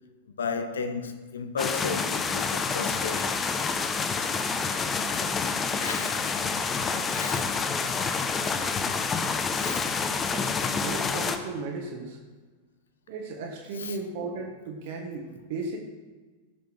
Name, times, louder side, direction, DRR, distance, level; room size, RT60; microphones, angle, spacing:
voice 1, 0.4-3.4 5.8-6.4 7.0-7.6 9.6-9.9 13.8-14.0, left 5 dB, 65° left, 1.0 m, -34 dB
sound 1, 1.6-11.4, left 5 dB, 20° left, 0.8 m, -28 dB
voice 2, 10.3-12.2 13.1-15.8, right 3 dB, 50° right, 1.6 m, -36 dB
17.5 x 6.9 x 4.7 m
figure-of-eight pair, 90°, 0 cm